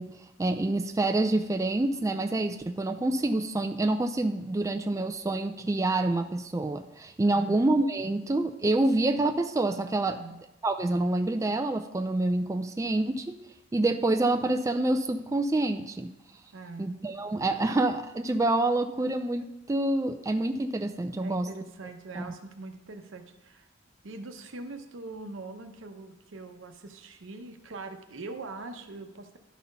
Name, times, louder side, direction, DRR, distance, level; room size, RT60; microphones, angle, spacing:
voice 1, 0.0-10.2 10.6-13.4 13.7-16.1 16.8-21.5 22.2-22.3, right 2 dB, 15° right, 7 dB, 0.4 m, -27 dB
voice 2, 7.2-7.6 10.0-10.4 16.5-17.0 21.2-23.7 24.0-29.4, right 3 dB, 80° right, 7 dB, 0.8 m, -42 dB
11.5 x 4.2 x 5.3 m, 0.93 s
head